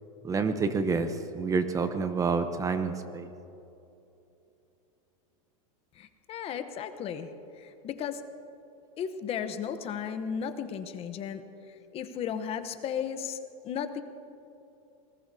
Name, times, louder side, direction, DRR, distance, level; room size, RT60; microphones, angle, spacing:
voice 1, 0.2-3.3, right 4 dB, 20° right, 9 dB, 0.8 m, -28 dB
voice 2, 6.0-8.2 9.0-11.4 11.7-13.4 13.6-14.0, left 8 dB, 35° left, 9 dB, 0.9 m, -35 dB
25.5 x 20.0 x 2.8 m, 2.8 s
supercardioid pair, 135°, 18 cm